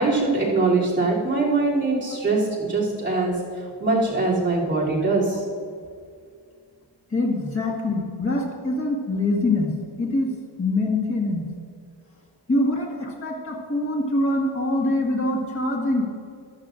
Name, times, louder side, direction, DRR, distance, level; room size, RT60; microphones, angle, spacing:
voice 1, 0.0-3.4 3.8-5.4, right 3 dB, 25° right, -7 dB, 3.0 m, -22 dB
voice 2, 7.1-9.7 10.0-10.3 10.6-11.4 12.5-16.0, left 2 dB, 30° left, -2 dB, 1.6 m, -24 dB
15.0 x 12.0 x 2.5 m, 2.2 s
wide cardioid pair, 150°, 45 cm